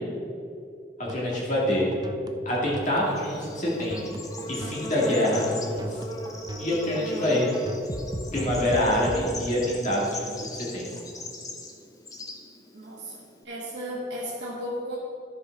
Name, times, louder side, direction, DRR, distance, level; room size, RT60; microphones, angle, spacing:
voice 1, 1.0-1.9 2.5-4.2 4.5-6.0 6.6-7.5 8.3-10.9, left 1 dB, 45° left, -5 dB, 2.3 m, -26 dB
sound 1, 1.0-9.2, right 1 dB, 20° right, 0.5 m, -39 dB
Bird / Insect, 2.8-13.4, left 1 dB, 20° left, 0.8 m, -38 dB
voice 2, 12.7-15.0, equal, 70° right, -6 dB, 1.4 m, -35 dB
13.0 x 5.6 x 4.6 m, 2.5 s
head